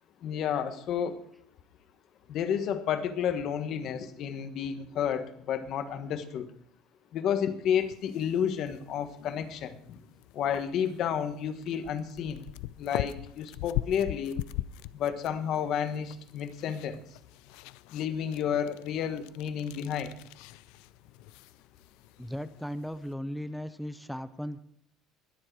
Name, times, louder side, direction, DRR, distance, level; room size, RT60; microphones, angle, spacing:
voice 1, 0.2-1.2 2.3-6.4 7.1-10.0 10.3-12.4 12.8-14.4 14.9-17.0 17.9-20.1, left 8 dB, 45° left, 10 dB, 1.4 m, -31 dB
sound 1, 7.8-23.1, left 16 dB, 75° left, 0.5 m, -42 dB
voice 2, 22.2-24.6, equal, ahead, 12 dB, 0.5 m, -37 dB
21.0 x 7.6 x 4.7 m, 0.65 s
cardioid pair, 160°, 0 cm